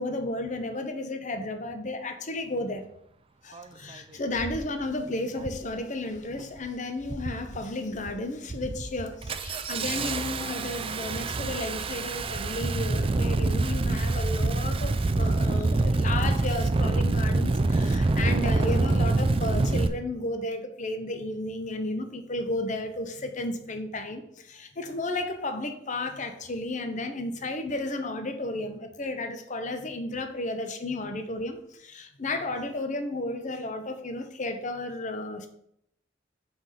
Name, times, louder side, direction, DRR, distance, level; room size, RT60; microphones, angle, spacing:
voice 1, 0.0-2.8 3.4-35.5, left 2 dB, 40° left, 7 dB, 0.8 m, -33 dB
Engine starting, 3.5-3.6 4.4-4.7 5.4-5.7 6.1-6.6 7.0-7.6 8.0-8.2 8.5-19.9, right 2 dB, 30° right, 0.4 m, -26 dB
6.0 x 5.0 x 5.6 m, 0.74 s
head